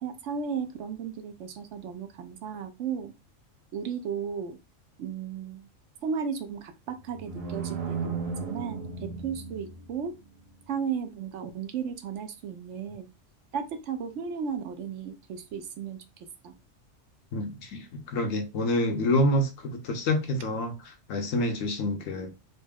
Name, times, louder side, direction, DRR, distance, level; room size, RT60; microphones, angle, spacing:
voice 1, 0.0-3.1 3.7-4.6 5.0-5.7 6.0-10.1 10.7-13.1 13.5-16.0 16.4-16.5, right 7 dB, 70° right, 0.9 m, -35 dB
sound 1, 6.9-10.1, right 5 dB, 40° right, 0.6 m, -35 dB
voice 2, 17.3-22.3, left 1 dB, 80° left, 1.2 m, -27 dB
4.1 x 2.1 x 3.5 m
omnidirectional pair, 1.3 m